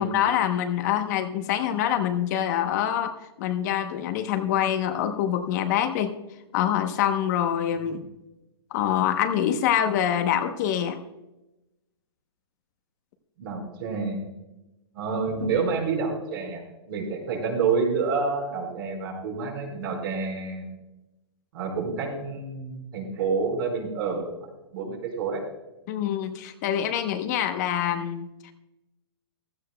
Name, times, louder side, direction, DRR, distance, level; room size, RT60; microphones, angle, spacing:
voice 1, 0.0-3.1 3.4-6.1 6.5-8.0 8.7-11.0 25.9-28.5, left 10 dB, 40° left, 7 dB, 0.9 m, -25 dB
voice 2, 13.4-14.2 14.9-16.6 16.9-20.7 21.5-24.3 24.7-25.4, right 5 dB, 55° right, 0 dB, 4.6 m, -28 dB
15.5 x 14.0 x 2.2 m, 0.97 s
hypercardioid pair, 160°, 14 cm